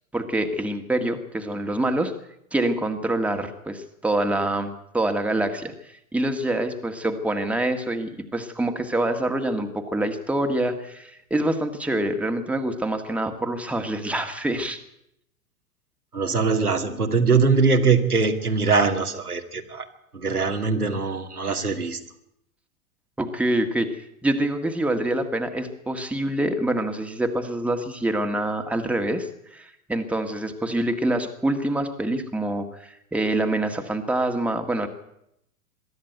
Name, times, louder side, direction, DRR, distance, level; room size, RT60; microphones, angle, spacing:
voice 1, 0.1-2.1 2.5-14.8 23.2-34.9, right 1 dB, 5° right, 5 dB, 1.8 m, -26 dB
voice 2, 16.1-19.9 20.1-22.0, right 4 dB, 85° right, 4 dB, 2.4 m, -22 dB
22.5 x 13.0 x 9.3 m, 0.78 s
figure-of-eight pair, 100°, 44 cm